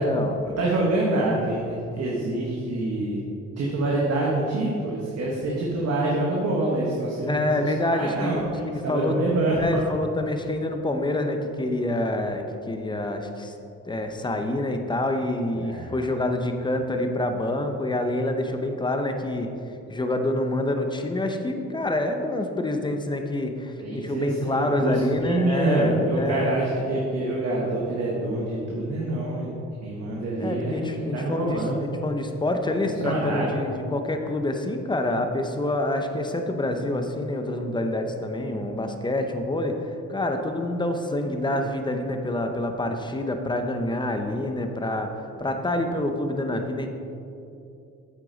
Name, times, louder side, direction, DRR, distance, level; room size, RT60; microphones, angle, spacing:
voice 1, 0.0-0.4 7.3-9.2 9.6-13.5 13.9-19.5 19.9-26.5 30.4-39.8 40.1-45.1 45.4-46.9, left 1 dB, 15° left, 5 dB, 0.7 m, -27 dB
voice 2, 0.6-3.2 3.6-9.8 15.5-15.9 23.8-29.5 29.8-31.8 33.0-33.6, right 2 dB, 55° right, -3 dB, 1.4 m, -26 dB
8.7 x 8.1 x 4.0 m, 2.7 s
cardioid pair, 135°, 30 cm